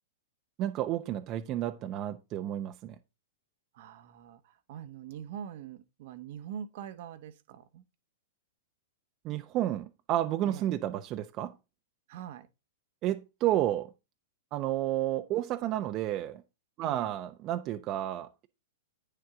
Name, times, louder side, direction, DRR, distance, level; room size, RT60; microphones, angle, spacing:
voice 1, 0.6-3.0 9.2-11.5 13.0-13.9 14.5-16.4 16.8-18.5, right 13 dB, 40° right, 0.8 m, -31 dB
voice 2, 3.7-7.8 10.4-10.8 12.1-12.5 16.8-17.1, right 9 dB, 60° right, 1.0 m, -44 dB
9.0 x 6.7 x 3.7 m
hypercardioid pair, 115°, 0 cm